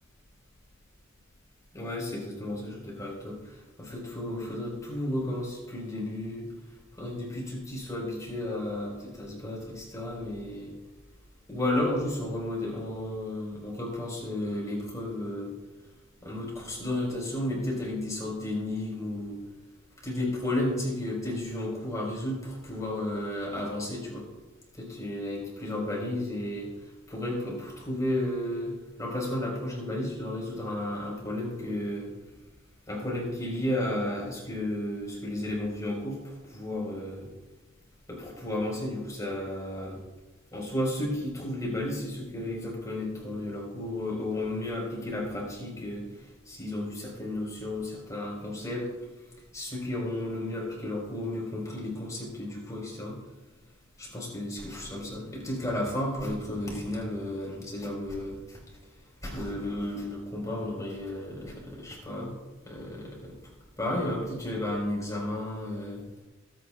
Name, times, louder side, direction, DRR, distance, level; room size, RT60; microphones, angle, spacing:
voice 1, 1.7-6.5 7.0-10.7 11.5-15.5 16.2-19.4 20.0-24.3 24.8-26.7 27.1-32.1 32.9-37.3 38.1-40.0 40.5-46.1 46.5-48.9 49.5-53.2 54.0-58.6 59.2-62.4 62.6-63.3 63.8-66.0, left 1 dB, 15° left, -3 dB, 4.5 m, -33 dB
22.5 x 9.4 x 2.4 m, 1.1 s
head